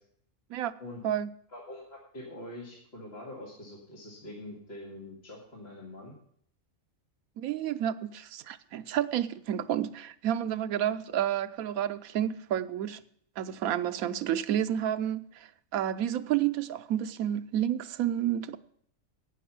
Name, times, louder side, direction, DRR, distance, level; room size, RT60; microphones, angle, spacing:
voice 1, 1.5-6.1, left 1 dB, 45° left, 2.4 m, -44 dB
voice 2, 7.4-13.0 13.4-18.6, right 10 dB, 85° right, 1.1 m, -30 dB
11.0 x 9.1 x 5.9 m
omnidirectional pair, 1.4 m